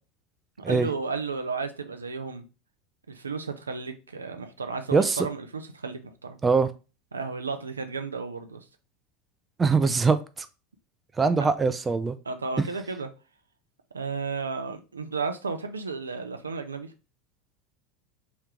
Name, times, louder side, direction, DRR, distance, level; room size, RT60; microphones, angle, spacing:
voice 1, 0.7-2.4 3.1-6.4 7.1-8.6 11.4-11.5 12.3-13.1 13.9-16.9, right 4 dB, 85° right, 0.5 m, -33 dB
voice 2, 9.6-10.5 11.2-12.1, right 4 dB, 20° right, 0.4 m, -22 dB
3.3 x 3.0 x 3.7 m
figure-of-eight pair, 80°, 0 cm